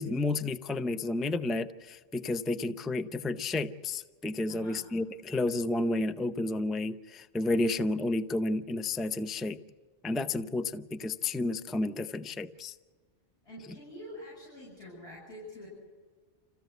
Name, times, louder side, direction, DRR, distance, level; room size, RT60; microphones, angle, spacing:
voice 1, 0.0-9.6 10.0-12.8, left 2 dB, ahead, 10 dB, 0.4 m, -31 dB
voice 2, 4.5-4.8 13.4-15.7, left 1 dB, 55° left, -6 dB, 7.8 m, -46 dB
27.0 x 15.5 x 8.0 m, 1.5 s
omnidirectional pair, 1.2 m